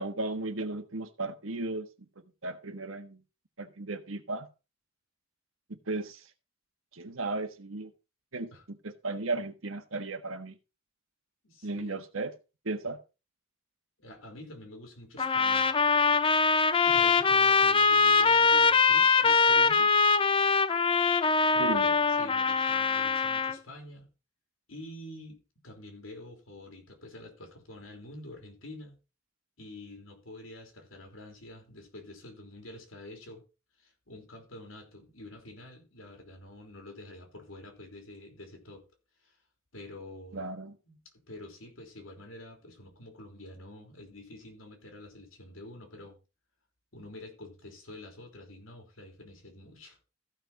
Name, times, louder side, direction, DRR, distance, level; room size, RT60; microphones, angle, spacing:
voice 1, 0.0-1.9 2.4-3.2 3.6-4.5 5.7-6.2 6.9-7.9 8.3-8.5 8.8-10.5 11.6-12.3 12.6-13.0 21.6-22.0 40.3-40.8, right 2 dB, 90° right, 1.4 m, -35 dB
voice 2, 11.4-12.0 14.0-15.7 16.8-19.9 21.5-24.1 24.7-25.4 25.6-29.0 29.6-33.4 33.8-38.8 39.2-39.4 39.7-40.5 40.9-41.0 41.3-46.2 46.9-50.0, left 1 dB, 90° left, 3.4 m, -47 dB
sound 1, 15.2-23.6, left 4 dB, 25° left, 0.6 m, -23 dB
14.5 x 6.0 x 4.2 m
head